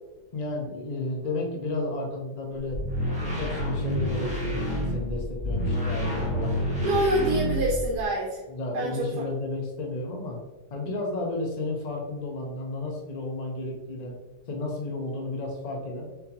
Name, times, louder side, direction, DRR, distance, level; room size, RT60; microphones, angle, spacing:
voice 1, 0.3-2.8 3.2-7.0 8.5-10.4 10.7-14.2 14.5-16.1, left 2 dB, 65° left, 0 dB, 0.4 m, -32 dB
sound 1, 2.7-8.0, equal, 5° right, 1.1 m, -28 dB
voice 2, 6.8-8.4 8.7-9.3, right 1 dB, 85° right, -2 dB, 1.3 m, -26 dB
4.3 x 3.9 x 2.8 m, 1.1 s
omnidirectional pair, 1.7 m